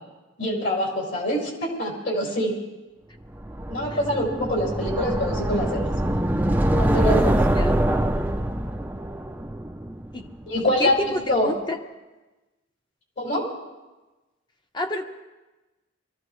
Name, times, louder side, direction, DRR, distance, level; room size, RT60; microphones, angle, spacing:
voice 1, 0.4-2.6 3.7-5.9 6.7-7.4 10.5-11.5 13.2-13.5, left 1 dB, 60° left, -3 dB, 4.5 m, -25 dB
sound 1, 3.4-10.4, right 1 dB, 10° right, 0.5 m, -24 dB
voice 2, 10.6-11.8 14.7-15.0, left 1 dB, 20° left, 5 dB, 0.9 m, -29 dB
24.0 x 14.5 x 3.2 m, 1.1 s
head